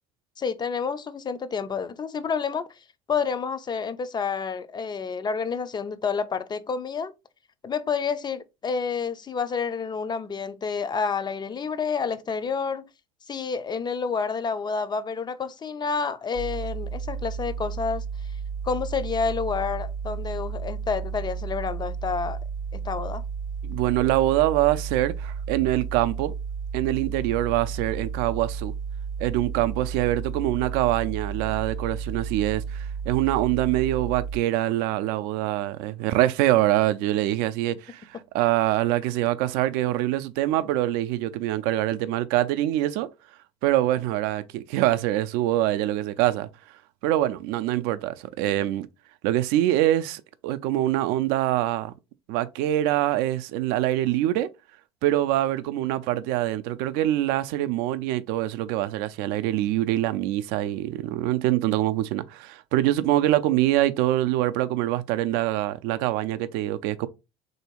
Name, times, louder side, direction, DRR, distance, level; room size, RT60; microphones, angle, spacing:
voice 1, 0.4-2.7 3.1-7.1 7.6-12.9 13.3-18.0 18.6-22.4 22.7-23.2, left 5 dB, 25° left, 0.4 m, -29 dB
sound 1, 16.3-34.4, right 6 dB, 50° right, 0.8 m, -33 dB
voice 2, 23.6-26.3 26.7-28.7 29.2-38.1 38.3-43.1 43.6-46.5 47.0-48.9 49.2-51.9 52.3-54.5 55.0-67.1, right 14 dB, 65° right, 0.4 m, -24 dB
3.3 x 2.7 x 2.9 m
hypercardioid pair, 70°, 17 cm